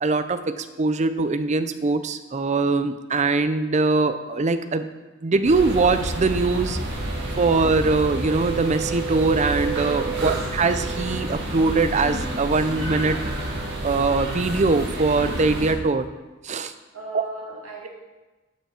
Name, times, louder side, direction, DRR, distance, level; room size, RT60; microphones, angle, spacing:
voice 1, 0.0-4.9 5.2-6.8 7.4-13.2 13.8-16.1 16.4-16.7 17.1-17.2, right 3 dB, 35° right, 11 dB, 0.5 m, -22 dB
sound 1, 5.4-15.7, right 2 dB, 60° right, 1.8 m, -29 dB
voice 2, 16.9-17.9, right 2 dB, 85° right, -3 dB, 2.4 m, -37 dB
11.5 x 5.8 x 4.3 m, 1.2 s
head